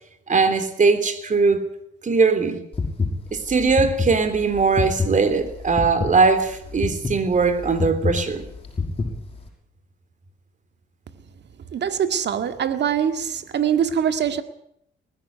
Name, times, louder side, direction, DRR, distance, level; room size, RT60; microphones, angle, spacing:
voice 1, 0.3-1.6 2.0-2.6 3.3-8.5, right 4 dB, 40° right, 3.5 m, -20 dB
sound 1, 2.7-9.5, left 4 dB, 30° left, 6.2 m, -27 dB
voice 2, 11.7-14.4, right 8 dB, 60° right, 1.9 m, -23 dB
20.0 x 15.5 x 9.4 m
cardioid pair, 90°, 20 cm